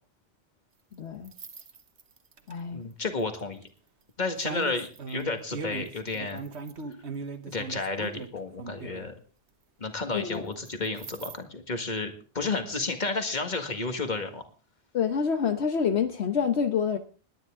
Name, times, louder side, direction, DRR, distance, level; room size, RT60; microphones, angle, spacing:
voice 1, 0.9-1.3 2.5-2.8 10.1-10.4 14.9-17.0, left 6 dB, 75° left, 7 dB, 1.2 m, -27 dB
sound 1, 1.2-2.5 3.4-3.6 4.4-9.1 10.7-11.3, right 4 dB, 80° right, 1.5 m, -38 dB
voice 2, 2.7-3.6 4.2-6.4 7.5-9.1 9.8-14.4, left 3 dB, 45° left, 6 dB, 1.9 m, -32 dB
20.0 x 10.0 x 3.7 m, 0.39 s
omnidirectional pair, 1.1 m